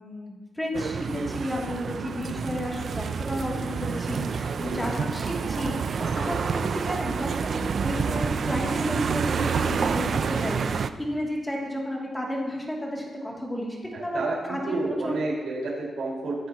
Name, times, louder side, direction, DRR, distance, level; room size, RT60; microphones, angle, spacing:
voice 1, 0.0-14.2 14.5-15.2, left 1 dB, 10° left, -3 dB, 2.9 m, -32 dB
sound 1, 0.7-10.9, right 6 dB, 50° right, 0.5 m, -28 dB
voice 2, 13.9-16.4, right 3 dB, 75° right, -6 dB, 5.0 m, -30 dB
24.0 x 10.5 x 3.1 m, 1.3 s
wide cardioid pair, 160°, 0 cm